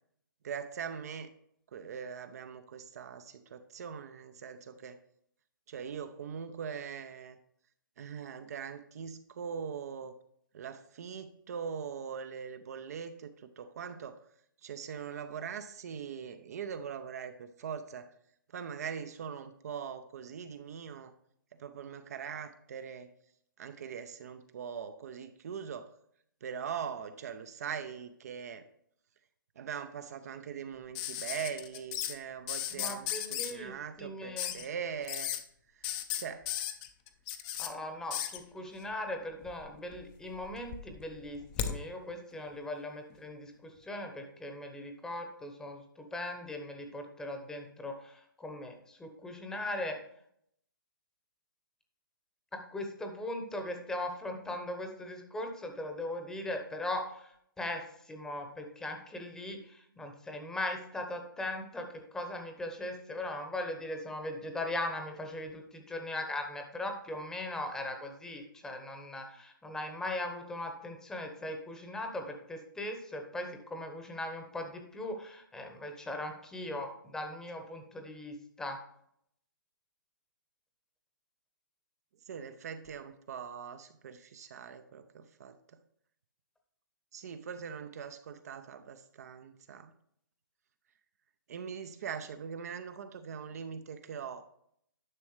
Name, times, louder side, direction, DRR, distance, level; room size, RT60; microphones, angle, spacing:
voice 1, 0.4-1.3 1.7-5.0 5.7-7.4 8.0-10.1 10.5-14.2 14.6-18.1 18.5-21.1 21.5-23.1 23.6-25.9 26.4-28.7 29.6-35.3 35.7-35.9 36.2-36.5 82.3-85.8 87.1-89.9 91.5-94.4, right 7 dB, 45° right, 9 dB, 0.6 m, -41 dB
sound 1, 30.9-32.1 32.5-33.5 34.4-34.6 35.0-35.4 35.8-37.7 38.1-38.4 39.4-40.0 40.3-41.7 43.1-43.2, left 11 dB, 25° left, 0.6 m, -35 dB
voice 2, 32.7-34.6 37.6-50.0 52.5-78.8, left 1 dB, 5° left, 4 dB, 1.0 m, -39 dB
10.5 x 6.0 x 3.2 m, 0.69 s
hypercardioid pair, 145°, 12 cm